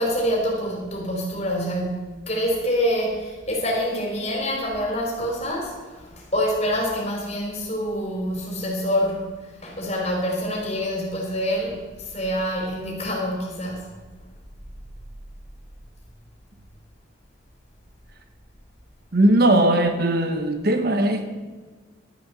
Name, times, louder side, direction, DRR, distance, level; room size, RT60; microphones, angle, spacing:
voice 1, 0.0-13.9, equal, 30° left, -2 dB, 4.2 m, -26 dB
voice 2, 19.1-21.2, right 1 dB, 50° right, 7 dB, 1.1 m, -19 dB
12.5 x 8.6 x 7.5 m, 1.3 s
head